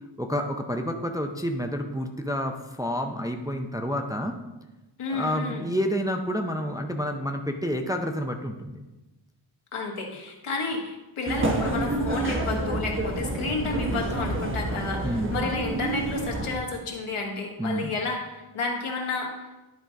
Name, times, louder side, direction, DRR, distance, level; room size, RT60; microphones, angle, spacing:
voice 1, 0.2-4.4 5.1-8.8 15.0-15.4 17.6-18.0, equal, 10° right, 4 dB, 0.4 m, -29 dB
voice 2, 5.0-5.6 9.7-19.6, left 3 dB, 90° left, 0 dB, 1.6 m, -31 dB
sound 1, 11.3-16.6, right 2 dB, 25° right, 1.0 m, -28 dB
11.0 x 3.8 x 5.1 m, 1.1 s
wide cardioid pair, 150°, 49 cm